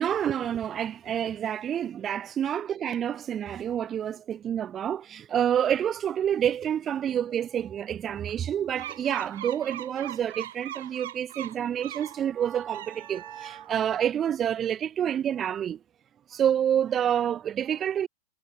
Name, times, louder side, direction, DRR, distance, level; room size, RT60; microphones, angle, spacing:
voice 1, 0.0-15.8 16.3-18.1, right 9 dB, 25° right, 1.2 m, -28 dB
sound 1, 8.8-12.2 12.6-13.8, right 13 dB, 80° right, 1.8 m, -41 dB
supercardioid pair, 130°, 0 cm